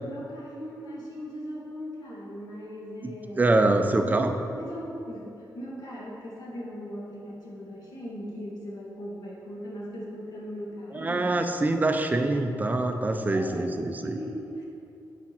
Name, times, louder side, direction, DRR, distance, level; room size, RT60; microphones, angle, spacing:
voice 1, 0.0-11.4 13.3-13.8 14.0-14.6, equal, 65° left, -4 dB, 2.1 m, -39 dB
voice 2, 3.0-4.3 10.9-14.2, right 2 dB, 20° right, 5 dB, 0.5 m, -25 dB
8.5 x 5.1 x 6.0 m, 2.8 s
wide cardioid pair, 140°, 8 cm